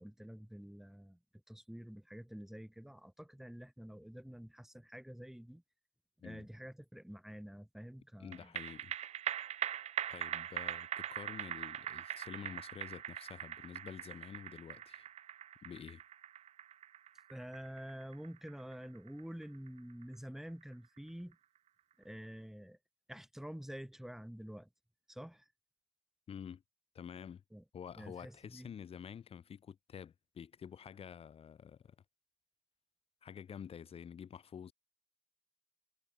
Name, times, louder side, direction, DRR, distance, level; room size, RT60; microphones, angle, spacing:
voice 1, 0.0-5.6 6.2-8.5 17.3-21.4 22.0-22.8 23.1-24.7 25.1-25.5 27.5-27.6 28.0-28.7, equal, 5° right, 2.3 m, -48 dB
voice 2, 8.2-8.9 10.1-15.1 15.6-16.0 26.3-26.6 26.9-27.4 27.7-31.9 33.2-34.7, left 8 dB, 50° left, 1.4 m, -49 dB
sound 1, 8.3-21.0 21.3-21.4, right 10 dB, 60° right, 0.7 m, -42 dB
cardioid pair, 90°, 13 cm